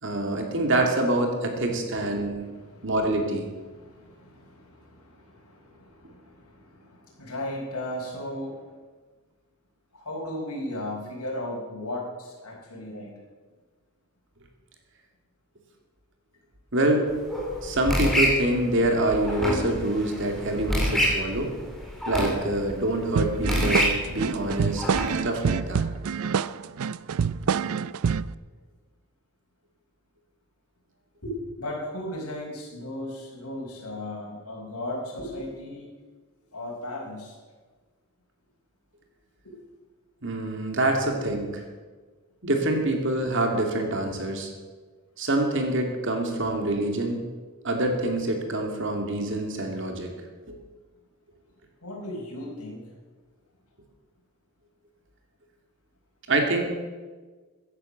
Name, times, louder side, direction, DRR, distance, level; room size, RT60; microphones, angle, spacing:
voice 1, 0.0-2.4 2.8-3.5 16.7-17.1 17.6-21.5 22.1-24.8 25.2-25.8 40.2-41.5 42.4-44.5 45.2-47.2 47.6-50.1 50.5-50.6 56.3-56.6, right 1 dB, 55° right, 3 dB, 2.5 m, -26 dB
voice 2, 2.4-2.9 3.7-8.6 9.9-13.1 31.2-35.9 36.5-37.4 39.4-39.5 41.1-41.2 51.8-52.9, left 1 dB, 80° left, -2 dB, 4.8 m, -36 dB
sound 1, 17.1-25.1, equal, ahead, 3.2 m, -28 dB
sound 2, 23.2-28.3, right 6 dB, 75° right, 0.4 m, -27 dB
15.5 x 10.0 x 6.6 m, 1.4 s
head